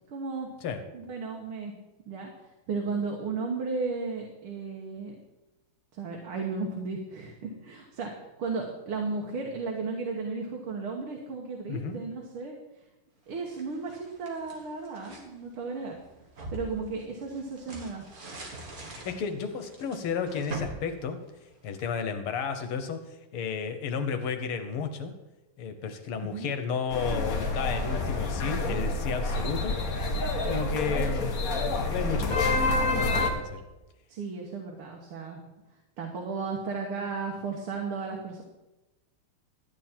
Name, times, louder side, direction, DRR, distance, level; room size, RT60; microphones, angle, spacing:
voice 1, 0.1-0.5 0.9-1.7 2.1-2.3 2.7-5.2 5.9-8.1 8.4-12.6 13.3-16.0 16.5-18.0 26.2-26.5 34.1-35.4 36.0-38.4, right 4 dB, 85° right, 0 dB, 2.2 m, -34 dB
sound 1, 13.3-15.3 15.8-21.9, right 2 dB, 45° right, 2.1 m, -43 dB
voice 2, 18.8-21.2 21.6-23.0 23.3-25.1 25.6-29.8 30.5-31.3 31.9-32.5 32.9-33.6, left 6 dB, 85° left, 8 dB, 2.0 m, -32 dB
sound 2, 26.9-33.3, left 2 dB, 45° left, 1.5 m, -28 dB
13.0 x 9.1 x 4.4 m, 1.0 s
omnidirectional pair, 2.3 m